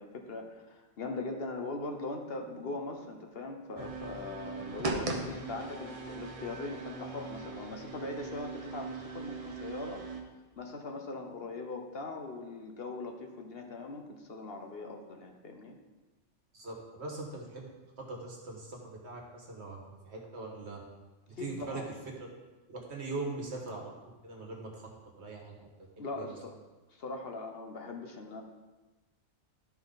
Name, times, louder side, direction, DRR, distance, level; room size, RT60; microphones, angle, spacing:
voice 1, 0.0-10.0 10.6-15.8 21.3-21.8 26.0-26.5 26.9-28.4, left 3 dB, 55° left, 3 dB, 1.1 m, -40 dB
sound 1, 3.8-10.2, right 3 dB, 35° right, 0.9 m, -39 dB
voice 2, 16.5-17.7 18.0-20.8 21.3-21.8 22.7-24.9 25.2-25.7 26.0-26.4, right 3 dB, 65° right, 0 dB, 1.7 m, -41 dB
12.5 x 4.4 x 3.9 m, 1.2 s
omnidirectional pair, 1.2 m